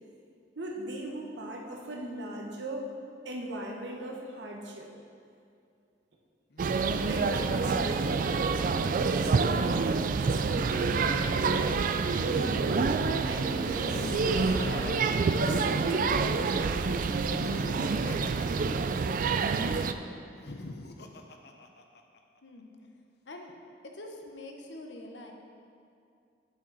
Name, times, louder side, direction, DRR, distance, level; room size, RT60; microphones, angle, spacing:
voice 1, 0.5-2.9 3.2-4.9 7.1-11.7 12.2-14.2 14.5-15.0 15.4-17.0, right 1 dB, 75° right, 0 dB, 1.1 m, -38 dB
Laughter, 6.5-9.0 10.4-12.8 13.6-16.1 17.0-19.4 20.3-22.2, left 2 dB, 65° left, 0.6 m, -42 dB
sound 1, 6.6-19.9, right 4 dB, 50° right, 0.3 m, -27 dB
voice 2, 22.4-22.8 23.3-23.5 23.8-25.3, left 1 dB, 90° left, 2 dB, 1.0 m, -45 dB
8.9 x 7.4 x 4.0 m, 2.4 s
head